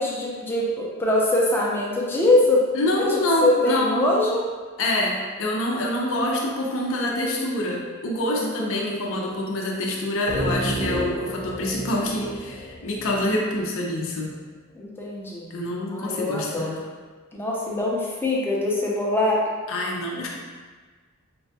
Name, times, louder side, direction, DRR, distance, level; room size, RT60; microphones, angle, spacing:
voice 1, 0.0-2.6 3.0-3.1 3.4-4.4 8.4-9.3 14.8-15.5 15.9-16.7 17.3-19.4, left 2 dB, 10° left, -4 dB, 0.5 m, -23 dB
voice 2, 2.7-4.1 4.8-14.3 15.5-16.8 19.7-20.3, left 1 dB, 65° left, -2 dB, 0.5 m, -26 dB
sound 1, 10.3-13.9, right 1 dB, 40° right, 0.7 m, -31 dB
4.6 x 2.2 x 2.7 m, 1.4 s
head